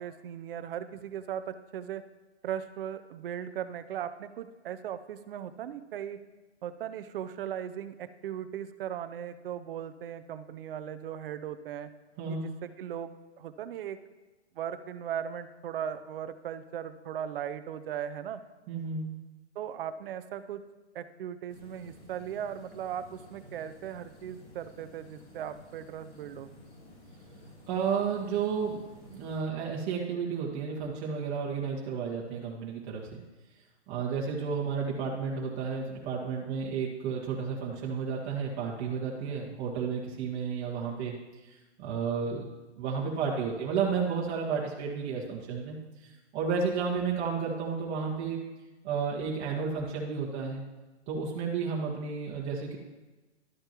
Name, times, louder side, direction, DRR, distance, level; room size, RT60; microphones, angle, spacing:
voice 1, 0.0-2.0 2.4-6.2 6.6-11.9 12.3-13.1 13.4-14.0 14.6-18.4 19.5-20.6 20.9-26.5, right 9 dB, 50° right, 12 dB, 0.8 m, -38 dB
voice 2, 18.7-19.1 27.7-33.2 33.9-41.2 41.4-42.5 42.8-48.4 48.8-50.6 51.1-52.8, right 6 dB, 30° right, -4 dB, 1.7 m, -32 dB
sound 1, 21.5-29.4, left 1 dB, 30° left, 3.1 m, -53 dB
12.5 x 8.8 x 3.0 m, 1.2 s
hypercardioid pair, 130°, 35 cm